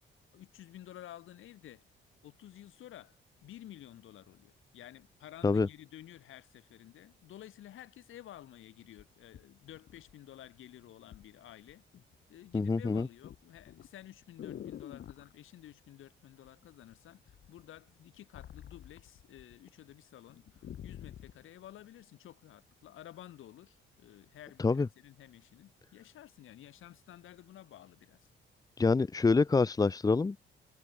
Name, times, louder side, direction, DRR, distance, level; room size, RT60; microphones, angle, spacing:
voice 1, 0.3-1.8 2.2-11.8 12.3-28.3, left 12 dB, 85° left, 7.2 m, -52 dB
sound 1, 8.4-8.5 9.0-10.5 11.1-11.3 11.7-12.2 12.5-15.3 16.4-17.0 17.3-19.6 19.9-20.0 20.3-21.4 22.1-22.2, left 10 dB, 60° left, 6.9 m, -48 dB
voice 2, 12.5-13.1 24.6-24.9 28.8-30.5, left 4 dB, 20° left, 1.4 m, -26 dB
cardioid pair, 165°, 20 cm